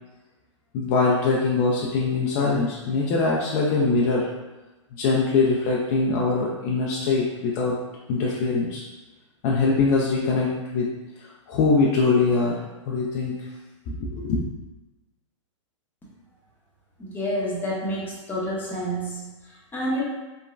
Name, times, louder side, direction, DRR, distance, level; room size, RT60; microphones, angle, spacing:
voice 1, 0.7-4.2 4.9-7.8 8.1-8.8 9.4-10.9 11.2-13.4 13.9-14.4, left 4 dB, 40° left, -4 dB, 0.4 m, -23 dB
voice 2, 17.0-20.0, equal, 10° left, -6 dB, 0.8 m, -29 dB
3.1 x 2.1 x 2.4 m, 1.1 s
hypercardioid pair, 120°, 17 cm